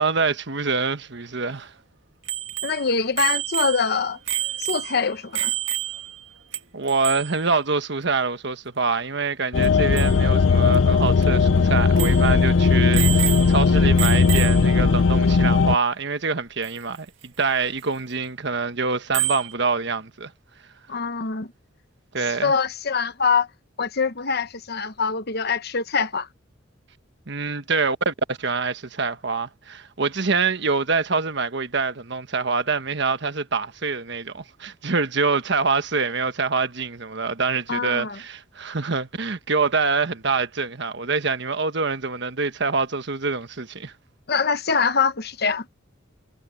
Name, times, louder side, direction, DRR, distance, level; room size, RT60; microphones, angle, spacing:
voice 1, 0.0-1.7 6.7-20.3 22.1-22.5 27.3-43.9, right 4 dB, 60° right, 1.3 m, -25 dB
Bicycle bell, 2.3-6.2 6.5-6.6 6.9-7.4 9.6-9.7 10.0-10.2 10.7-10.8 11.2-11.3 12.0-12.3 12.9-13.7 14.0-14.8 16.6-16.7 19.1-19.5, right 13 dB, 75° right, 1.8 m, -28 dB
voice 2, 2.6-4.2 4.6-5.5 20.9-21.5 22.2-23.5 23.8-26.3 37.7-38.2 44.3-45.7, left 5 dB, 55° left, 1.0 m, -24 dB
sound 1, 9.5-15.8, left 4 dB, 70° left, 0.5 m, -18 dB
head